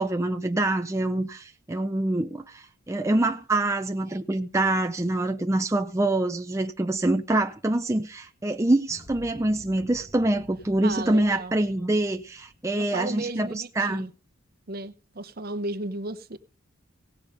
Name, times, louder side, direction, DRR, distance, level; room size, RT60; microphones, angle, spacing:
voice 1, 0.0-14.1, right 2 dB, 15° right, 0.5 m, -25 dB
sound 1, 8.9-13.6, equal, 15° left, 1.5 m, -50 dB
voice 2, 10.8-11.5 12.7-14.1 14.7-16.4, right 2 dB, 45° right, 0.8 m, -34 dB
17.0 x 7.0 x 5.3 m
head